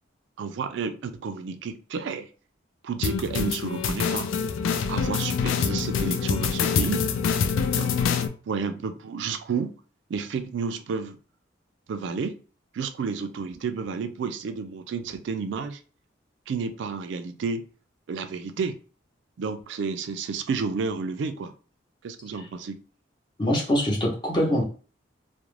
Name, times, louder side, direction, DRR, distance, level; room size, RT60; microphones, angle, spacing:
voice 1, 0.4-2.3 2.8-4.3 4.9-7.1 7.8-8.0 8.5-9.8 10.1-11.2 11.9-12.4 12.7-15.8 16.5-17.7 18.1-18.8 19.4-21.5 22.0-22.8, right 5 dB, 65° right, 0.3 m, -31 dB
sound 1, 3.0-8.3, left 6 dB, 80° left, 0.3 m, -25 dB
voice 2, 23.4-24.6, equal, 25° left, 0.7 m, -23 dB
2.4 x 2.1 x 3.1 m
head